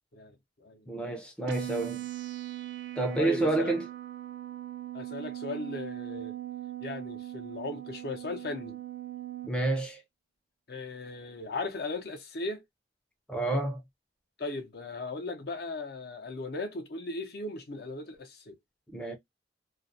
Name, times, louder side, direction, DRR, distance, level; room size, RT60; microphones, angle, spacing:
voice 1, 0.1-0.9 3.2-3.7 4.9-6.4 6.8-8.8 10.7-12.6 14.4-18.6, left 2 dB, 55° left, 0.6 m, -37 dB
voice 2, 0.9-2.0 3.0-3.9 9.5-10.0 13.3-13.8 18.9-19.2, right 2 dB, 5° left, 0.5 m, -29 dB
sound 1, 1.5-9.5, right 14 dB, 70° right, 0.4 m, -40 dB
2.4 x 2.0 x 2.5 m
head